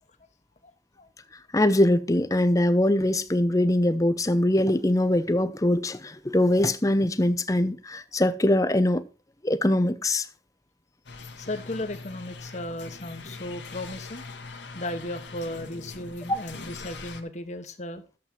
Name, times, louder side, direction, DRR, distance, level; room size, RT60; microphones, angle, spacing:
voice 1, 1.5-9.0 9.4-10.3 16.3-16.4, left 1 dB, 20° left, 0.7 m, -22 dB
sound 1, 11.0-17.2, left 3 dB, 90° left, 1.8 m, -42 dB
voice 2, 11.4-14.2 14.7-18.0, left 1 dB, 40° left, 1.4 m, -35 dB
12.0 x 7.6 x 4.4 m
head